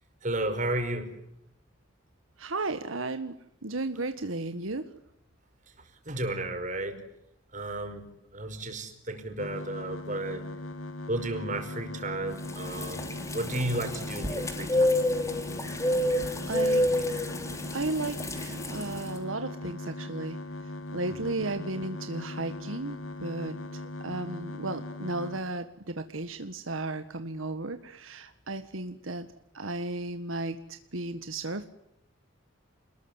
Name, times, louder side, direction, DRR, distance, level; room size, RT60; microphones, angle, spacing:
voice 1, 0.2-1.1 6.1-7.0 7.5-8.1 8.3-10.5 11.1-15.0 21.1-21.3, right 1 dB, 40° right, 6 dB, 5.3 m, -33 dB
voice 2, 2.4-3.4 3.6-4.9 16.4-16.9 17.7-23.6 24.0-29.3 29.5-31.7, right 2 dB, 80° right, 9 dB, 1.6 m, -34 dB
sound 1, 9.4-25.4, left 2 dB, 80° left, 2.5 m, -39 dB
sound 2, 12.5-19.1, left 1 dB, 15° left, 3.1 m, -29 dB
29.0 x 21.0 x 9.8 m, 0.82 s
head